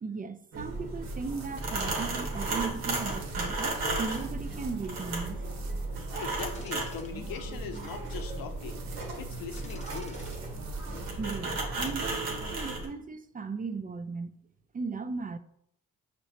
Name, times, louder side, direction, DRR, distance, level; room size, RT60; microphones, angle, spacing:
voice 1, 0.0-5.4 11.2-14.3 14.7-15.4, right 4 dB, 25° right, 0.4 m, -37 dB
sound 1, 0.5-12.9, right 2 dB, 90° right, 1.2 m, -34 dB
sound 2, 1.0-11.2, right 5 dB, 50° right, 0.8 m, -52 dB
voice 2, 6.1-10.2, left 7 dB, 75° left, 0.7 m, -41 dB
sound 3, 6.5-7.1 7.6-7.7 9.6-10.4 10.8-11.0, left 2 dB, 20° left, 0.8 m, -51 dB
5.8 x 3.2 x 2.8 m
supercardioid pair, 60°, 35 cm